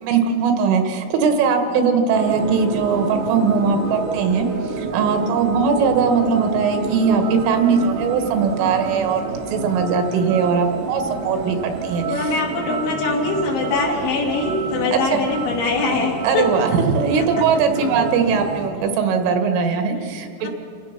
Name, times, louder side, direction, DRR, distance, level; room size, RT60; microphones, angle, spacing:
voice 1, 0.0-4.5 4.8-9.2 9.5-12.3 14.9-15.2 16.2-20.5, right 5 dB, 75° right, 5 dB, 3.8 m, -20 dB
sound 1, 2.1-18.7, right 4 dB, 90° right, 4.4 m, -29 dB
voice 2, 12.1-16.6 17.1-17.4 20.4-20.5, left 3 dB, 65° left, -1 dB, 4.9 m, -23 dB
29.5 x 17.0 x 5.9 m, 2.4 s
omnidirectional pair, 5.9 m